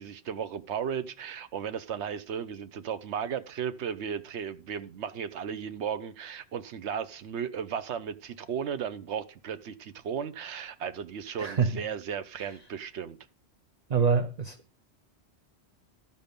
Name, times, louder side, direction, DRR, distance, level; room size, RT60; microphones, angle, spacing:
voice 1, 0.0-13.2, right 7 dB, 80° right, 1.0 m, -35 dB
voice 2, 11.4-11.8 13.9-14.8, right 5 dB, 45° right, 0.6 m, -26 dB
12.5 x 5.4 x 5.2 m
omnidirectional pair, 1.1 m